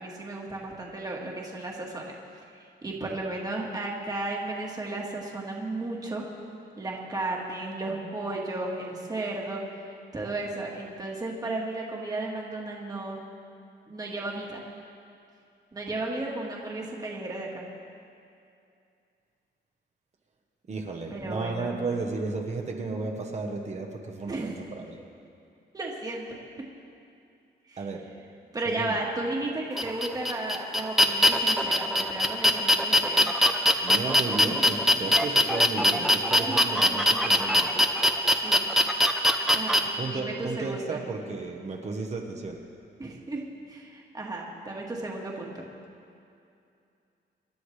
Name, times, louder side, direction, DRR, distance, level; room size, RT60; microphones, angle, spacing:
voice 1, 0.0-2.1 2.6-6.2 6.8-9.6 10.1-13.3 13.9-14.6 15.7-17.6 21.1-21.8 24.3-24.6 25.7-26.3 27.7-27.8 28.5-33.3 36.4-36.5 38.4-38.7 39.5-39.9 40.1-41.0 43.0-43.4 43.7-45.7, right 2 dB, 20° right, -2 dB, 1.6 m, -34 dB
voice 2, 20.7-25.0 27.8-28.1 28.6-29.0 33.8-37.8 40.0-42.6, right 3 dB, 35° right, 2 dB, 1.1 m, -34 dB
sound 1, 29.8-39.8, left 1 dB, ahead, 0.7 m, -22 dB
26.0 x 12.0 x 3.3 m, 2.5 s
wide cardioid pair, 180°, 19 cm